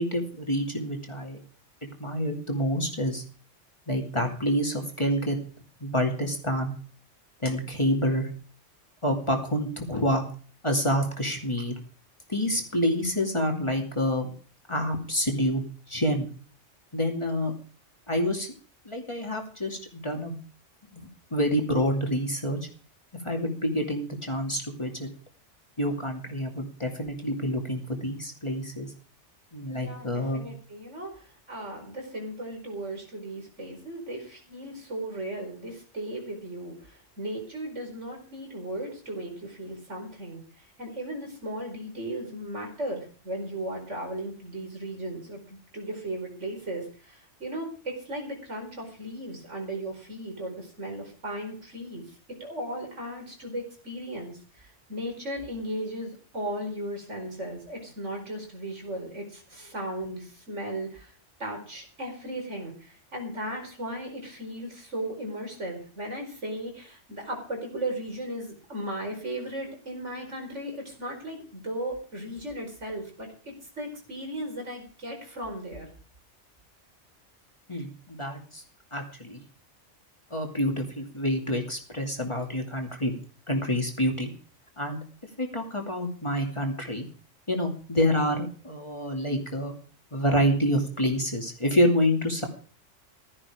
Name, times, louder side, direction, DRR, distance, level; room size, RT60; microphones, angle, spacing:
voice 1, 0.0-1.4 1.8-3.2 3.9-5.4 5.8-6.7 7.4-8.3 9.0-10.2 10.6-11.7 12.3-14.3 14.7-15.6 15.9-16.3 16.9-17.5 18.1-18.5 18.9-20.4 20.9-21.0 21.3-22.6 23.2-25.1 25.8-28.9 29.5-30.5 77.7-78.6 78.9-79.4 80.3-83.2 83.5-84.3 84.8-85.0 85.4-87.1 87.5-89.7 90.1-92.5, equal, 25° left, 2 dB, 2.6 m, -27 dB
voice 2, 29.6-61.1 61.4-75.9, right 1 dB, 75° right, 2 dB, 5.0 m, -36 dB
15.5 x 13.0 x 5.0 m, 0.42 s
omnidirectional pair, 1.2 m